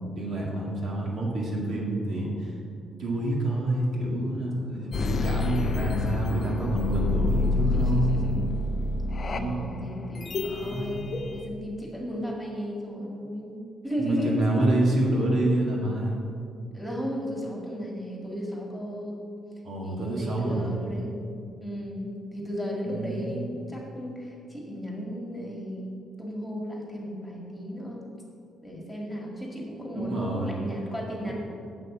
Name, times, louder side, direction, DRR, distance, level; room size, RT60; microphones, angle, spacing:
voice 1, 0.0-2.5 3.0-8.2 9.2-9.7 10.4-11.0 14.0-16.2 19.6-20.7 22.9-23.3 29.9-30.6 31.2-31.3, right 1 dB, 60° right, -2 dB, 2.0 m, -28 dB
voice 2, 2.1-2.4 4.8-5.3 7.7-8.5 9.2-11.0 11.3-13.6 13.8-15.0 16.7-19.2 19.8-21.2 21.6-28.0 28.6-31.3, equal, 5° left, -2 dB, 2.0 m, -35 dB
sound 1, 4.9-11.5, left 3 dB, 40° left, 0.5 m, -28 dB
7.0 x 6.0 x 7.3 m, 2.4 s
cardioid pair, 90°, 0 cm